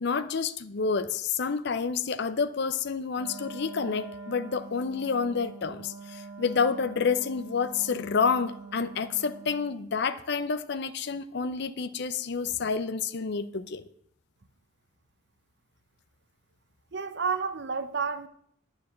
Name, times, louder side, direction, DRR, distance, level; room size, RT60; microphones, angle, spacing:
voice 1, 0.0-13.8, left 5 dB, 55° left, 0.5 m, -29 dB
Wind instrument woodwind instrument, 3.2-9.8, right 3 dB, 15° right, 1.4 m, -44 dB
voice 2, 16.9-18.3, right 5 dB, 55° right, 0.7 m, -30 dB
9.3 x 4.8 x 7.5 m
head